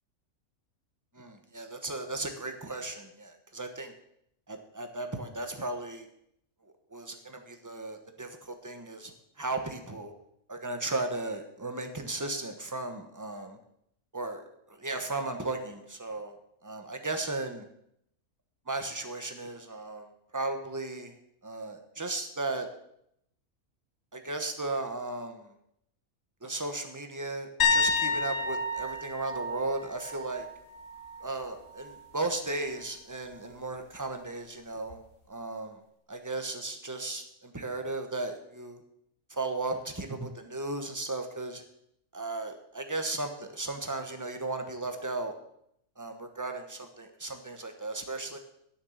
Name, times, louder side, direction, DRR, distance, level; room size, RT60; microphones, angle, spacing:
voice 1, 1.1-3.9 4.5-6.1 6.9-10.1 10.5-13.6 14.1-16.3 16.6-17.7 18.7-21.1 21.4-22.7 24.1-25.5 26.4-30.5 31.2-35.0 35.3-35.8 36.1-38.8 39.3-41.6 42.1-45.3 46.0-48.4, right 2 dB, 15° right, 6 dB, 1.0 m, -36 dB
sound 1, 27.6-31.3 31.7-32.0 34.9-35.0, left 4 dB, 50° left, 1.8 m, -30 dB
9.8 x 7.2 x 7.2 m, 0.75 s
omnidirectional pair, 1.5 m